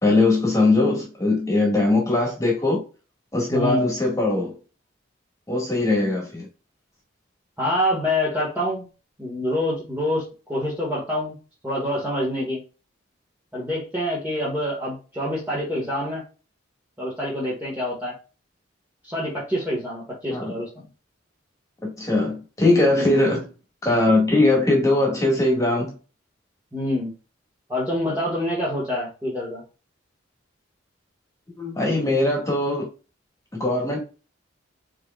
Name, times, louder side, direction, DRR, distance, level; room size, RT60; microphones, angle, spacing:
voice 1, 0.0-2.8 3.3-4.5 5.5-6.5 20.3-20.5 21.8-23.5 23.8-25.9 31.5-32.9 33.6-34.0, left 2 dB, 15° left, 1.8 m, -20 dB
voice 2, 3.5-3.9 7.6-8.8 9.2-11.4 11.6-12.6 13.5-16.2 17.0-18.1 19.0-20.8 23.0-23.3 26.7-27.1 27.7-29.6, left 1 dB, 10° right, 1.6 m, -26 dB
4.8 x 4.5 x 2.4 m
head